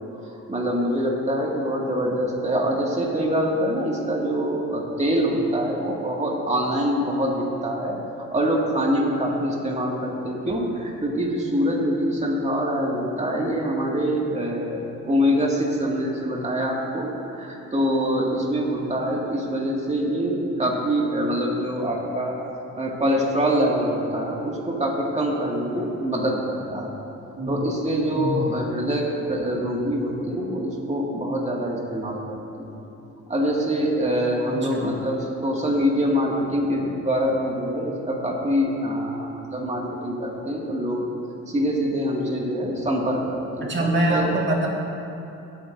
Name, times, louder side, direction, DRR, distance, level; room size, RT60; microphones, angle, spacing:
voice 1, 0.0-8.0 8.3-22.4 22.8-27.0 27.5-32.7 33.3-41.1 41.5-44.3, equal, 20° right, -2 dB, 2.1 m, -25 dB
voice 2, 28.1-28.5 34.4-34.9 43.6-44.7, right 1 dB, 40° right, -2 dB, 1.9 m, -24 dB
18.0 x 8.9 x 2.6 m, 2.8 s
cardioid pair, 90°, 30 cm